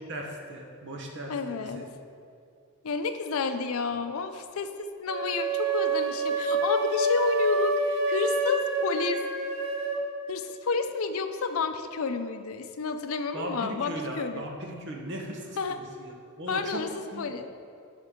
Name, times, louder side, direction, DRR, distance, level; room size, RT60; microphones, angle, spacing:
voice 1, 0.1-1.8 13.3-16.8 17.1-17.3, right 1 dB, 55° right, 1 dB, 1.1 m, -37 dB
voice 2, 1.3-1.9 2.8-9.2 10.3-14.4 15.6-15.8 16.5-17.5, left 4 dB, 75° left, 8 dB, 0.5 m, -30 dB
sound 1, 5.1-10.0, right 2 dB, 75° right, 1.2 m, -27 dB
11.0 x 5.4 x 3.7 m, 2.3 s
head